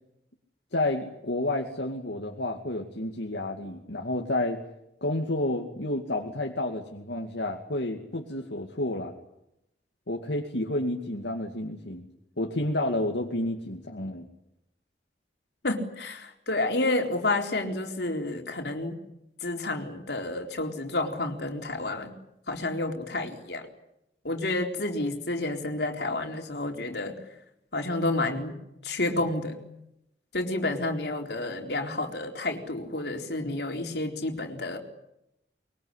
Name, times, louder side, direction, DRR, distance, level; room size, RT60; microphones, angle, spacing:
voice 1, 0.7-4.6 5.0-9.1 10.1-12.1 12.4-14.3, left 1 dB, 85° left, 2 dB, 2.4 m, -30 dB
voice 2, 15.6-19.0 19.4-22.1 22.5-23.7 24.2-27.2 27.7-29.6 30.3-34.8, left 2 dB, 70° left, 3 dB, 4.1 m, -30 dB
23.5 x 23.0 x 10.0 m, 0.84 s
head